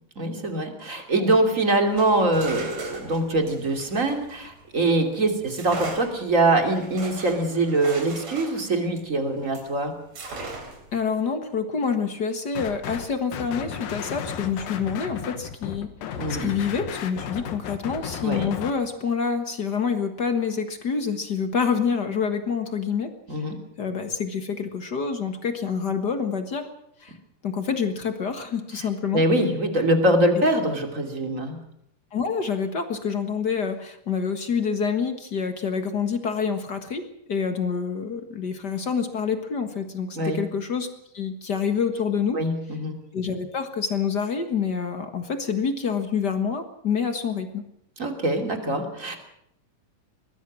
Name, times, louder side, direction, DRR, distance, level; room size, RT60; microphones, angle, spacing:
voice 1, 0.2-9.9 16.2-16.5 18.2-18.5 23.3-23.6 29.1-31.6 40.2-40.4 42.3-43.0 48.0-49.2, right 2 dB, 25° right, 5 dB, 2.8 m, -23 dB
sound 1, 1.9-4.9 5.5-9.7 10.1-10.9, right 3 dB, 55° right, 4.7 m, -39 dB
voice 2, 10.9-15.9 16.3-23.5 23.8-26.7 27.0-27.2 27.4-29.2 32.1-37.0 37.3-40.9 41.1-42.4 43.1-47.6, left 6 dB, 45° left, 7 dB, 1.4 m, -27 dB
sound 2, 12.6-13.1 13.3-18.7, left 8 dB, 85° left, 3.2 m, -34 dB
23.0 x 19.5 x 6.3 m, 0.73 s
omnidirectional pair, 3.9 m